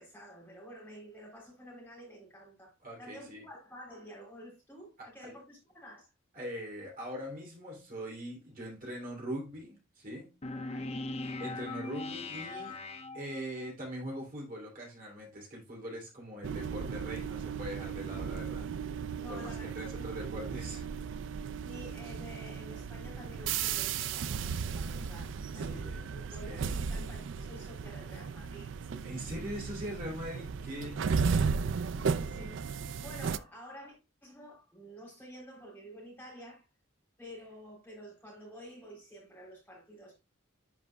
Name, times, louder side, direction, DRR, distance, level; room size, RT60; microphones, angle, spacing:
voice 1, 0.0-6.1 10.5-11.0 19.1-20.0 21.6-25.3 25.5-29.2 31.9-36.6 37.2-40.2, equal, 10° left, 3.3 m, -50 dB
voice 2, 2.8-3.5 5.0-5.3 6.3-10.3 11.2-12.8 13.1-19.0 19.3-20.9 25.5-26.1 26.5-26.8 29.0-31.5, equal, 40° right, 3.0 m, -42 dB
sound 1, 10.4-13.7, left 2 dB, 30° left, 0.5 m, -40 dB
sound 2, 16.4-33.4, right 6 dB, 60° right, 0.4 m, -35 dB
11.0 x 5.1 x 2.2 m
head